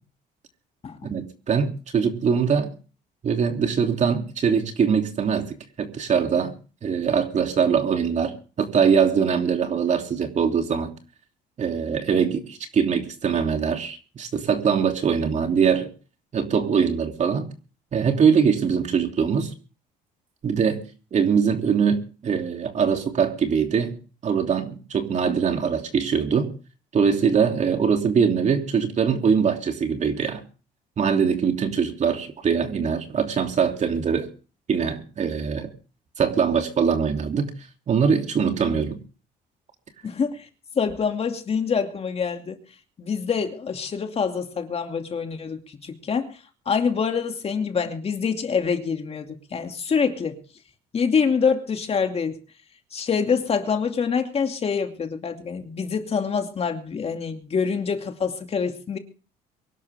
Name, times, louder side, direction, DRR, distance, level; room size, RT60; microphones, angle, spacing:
voice 1, 1.1-2.7 3.2-6.5 6.8-10.9 11.6-15.9 16.3-17.5 17.9-19.5 20.4-20.8 21.1-24.0 24.2-26.5 26.9-30.4 31.0-34.3 34.7-35.7 36.2-37.5 37.9-39.0, right 6 dB, 45° right, 3.0 m, -22 dB
voice 2, 40.0-40.5 40.8-42.6 43.0-46.4 46.7-50.4 50.9-52.4 52.9-59.0, left 6 dB, 35° left, 2.6 m, -25 dB
24.0 x 11.5 x 3.6 m
cardioid pair, 110°, 17 cm